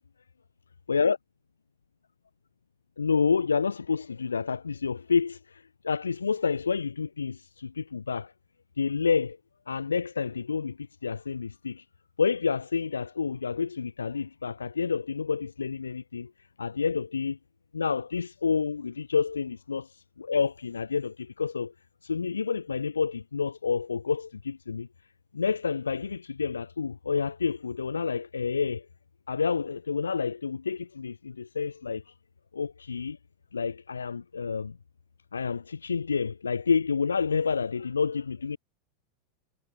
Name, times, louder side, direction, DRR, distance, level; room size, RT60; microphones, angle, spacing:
voice 1, 3.0-8.3 8.8-9.4 9.7-10.8 11.0-11.8 12.2-16.3 16.6-17.4 17.7-19.9 20.2-21.7 22.0-24.9 25.3-28.8 29.3-32.0 32.5-33.2 33.5-34.8 35.3-38.6, left 5 dB, 85° left, 2.8 m, -29 dB
figure-of-eight pair, 90°, 0 cm